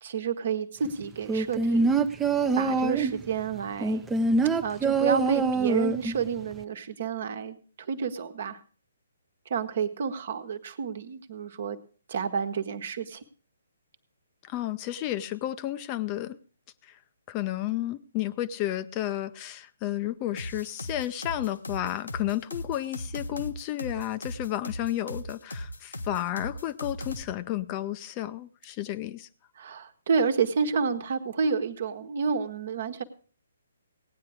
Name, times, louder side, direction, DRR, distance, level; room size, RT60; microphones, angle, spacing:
voice 1, 0.0-2.0 2.5-4.0 4.6-8.6 9.4-11.8 12.1-13.2 29.6-33.0, right 6 dB, 50° right, 9 dB, 1.2 m, -30 dB
sound 1, 1.3-3.2 3.8-6.2 6.5-6.6, right 3 dB, 10° right, 0.7 m, -24 dB
voice 2, 14.4-16.4 16.8-17.0 17.3-29.3, left 13 dB, 25° left, 11 dB, 0.6 m, -32 dB
sound 2, 20.4-27.2, left 1 dB, 75° left, 1.2 m, -37 dB
17.0 x 9.5 x 4.8 m, 0.39 s
figure-of-eight pair, 130°, 0 cm